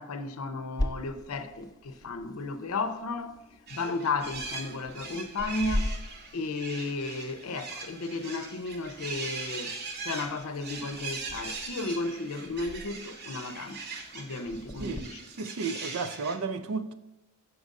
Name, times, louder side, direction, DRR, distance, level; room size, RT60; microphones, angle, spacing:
voice 1, 0.0-3.4 3.7-6.0 6.3-9.7 10.0-13.8 14.1-15.2, left 3 dB, 80° left, 0.6 m, -34 dB
sound 1, 0.8-15.0, left 1 dB, 15° left, 0.4 m, -40 dB
sound 2, 3.7-16.4, right 4 dB, 50° right, 0.9 m, -41 dB
voice 2, 15.4-16.9, right 4 dB, 70° right, 0.4 m, -33 dB
5.9 x 5.2 x 3.6 m
head